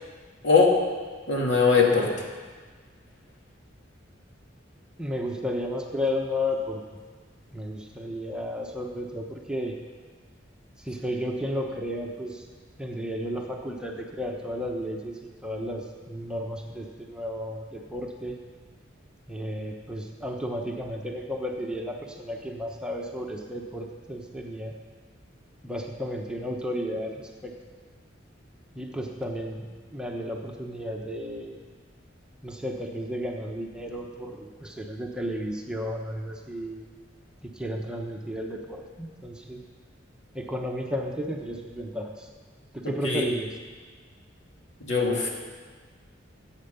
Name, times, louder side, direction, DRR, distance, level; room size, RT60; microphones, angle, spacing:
voice 1, 0.4-0.7 1.3-2.1 43.0-43.2 44.8-45.3, left 4 dB, 65° left, -1 dB, 2.6 m, -21 dB
voice 2, 5.0-7.0 7.5-9.7 10.8-12.4 12.8-18.4 19.3-24.7 25.6-27.5 28.7-31.6 32.4-36.8 37.4-39.6 40.3-42.3 42.7-43.6, equal, 5° right, 0 dB, 1.0 m, -33 dB
14.0 x 8.8 x 7.0 m, 1.5 s
head